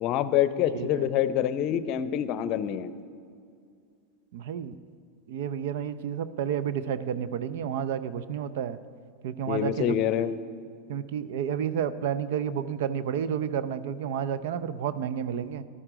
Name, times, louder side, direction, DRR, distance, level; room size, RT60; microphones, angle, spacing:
voice 1, 0.0-2.9 9.5-10.3, left 10 dB, 45° left, 14 dB, 0.6 m, -26 dB
voice 2, 0.7-1.1 4.3-4.7 5.3-8.8 9.2-10.0 10.9-15.6, right 8 dB, 65° right, 15 dB, 0.6 m, -30 dB
14.0 x 11.5 x 5.1 m, 2.3 s
hypercardioid pair, 95°, 0 cm